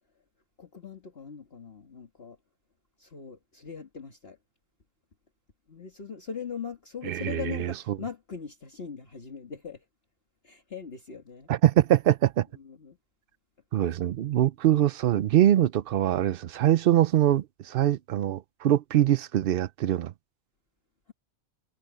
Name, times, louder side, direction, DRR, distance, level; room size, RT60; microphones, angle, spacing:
voice 1, 0.6-2.4 3.0-4.4 5.7-9.8 10.4-11.5 12.6-13.0, left 6 dB, 45° left, 2.0 m, -40 dB
voice 2, 7.0-8.0 11.5-12.5 13.7-20.1, right 12 dB, 65° right, 0.5 m, -23 dB
omnidirectional pair, 1.4 m